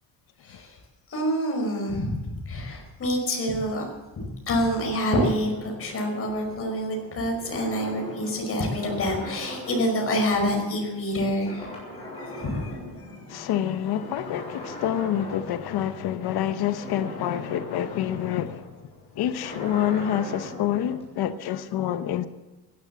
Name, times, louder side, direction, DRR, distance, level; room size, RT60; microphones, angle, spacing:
voice 1, 0.4-0.8 1.1-2.1 2.5-3.9 4.2-13.2, equal, 35° left, 5.3 m, -27 dB
sound 1, 4.7-11.1 11.4-13.5 13.9-21.0, left 1 dB, 15° left, 6.8 m, -40 dB
voice 2, 13.3-18.7 19.1-22.3, left 10 dB, 80° left, 1.0 m, -27 dB
16.5 x 11.5 x 7.1 m
cardioid pair, 155°, 37 cm